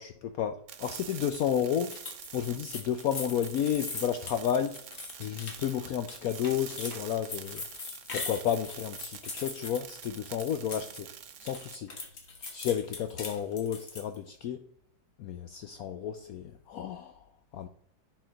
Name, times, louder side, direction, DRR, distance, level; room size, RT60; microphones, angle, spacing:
voice 1, 0.0-2.0 2.3-4.8 5.2-7.6 8.1-11.1 11.4-11.9 12.4-14.6 15.2-17.2 17.5-17.7, left 9 dB, 80° left, 0.7 m, -32 dB
sound 1, 0.7-11.7, right 9 dB, 75° right, 0.7 m, -46 dB
sound 2, 1.9-11.0 11.3-14.2, left 3 dB, 40° left, 1.4 m, -41 dB
10.0 x 4.3 x 3.9 m
omnidirectional pair, 2.1 m